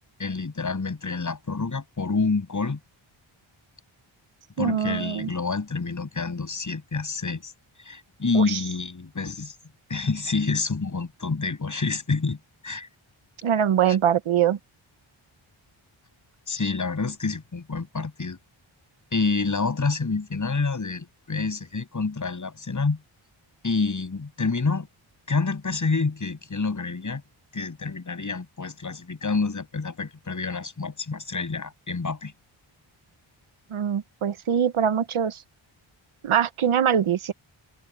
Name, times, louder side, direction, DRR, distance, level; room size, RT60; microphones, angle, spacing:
voice 1, 0.2-2.8 4.6-7.5 7.8-9.5 9.9-12.4 12.6-12.9 13.9-14.0 16.5-18.4 19.1-23.0 23.6-24.9 25.3-27.2 27.5-32.3, left 4 dB, 35° left, 7.8 m, -28 dB
voice 2, 4.6-5.3 8.3-8.6 13.4-14.6 33.7-35.4 36.2-37.3, right 8 dB, 75° right, 1.1 m, -23 dB
wide cardioid pair, 165°, 49 cm